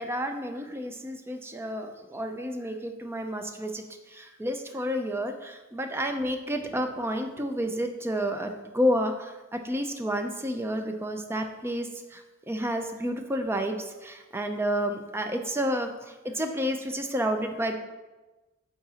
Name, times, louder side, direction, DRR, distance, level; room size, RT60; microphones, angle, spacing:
voice 1, 0.0-17.7, equal, 10° right, 5 dB, 0.4 m, -30 dB
8.8 x 3.7 x 2.9 m, 1.1 s
head